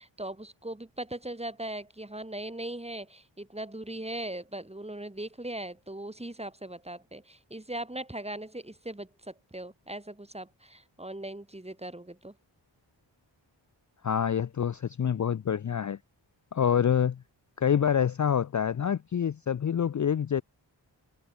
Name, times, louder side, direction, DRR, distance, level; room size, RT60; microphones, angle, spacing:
voice 1, 0.0-12.3, right 1 dB, 15° right, 2.4 m, -39 dB
voice 2, 14.0-16.0 16.5-17.2 17.6-20.4, left 8 dB, 40° left, 0.5 m, -26 dB
cardioid pair, 55°, 46 cm